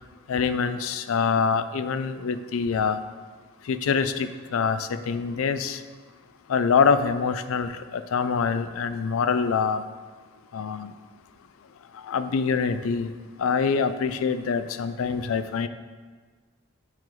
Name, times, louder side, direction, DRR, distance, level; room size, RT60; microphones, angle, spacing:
voice 1, 0.3-3.0 3.7-5.8 6.5-9.8 10.5-10.9 12.1-13.1 13.4-15.7, left 5 dB, 75° left, 11 dB, 0.4 m, -25 dB
7.5 x 3.8 x 4.6 m, 1.5 s
head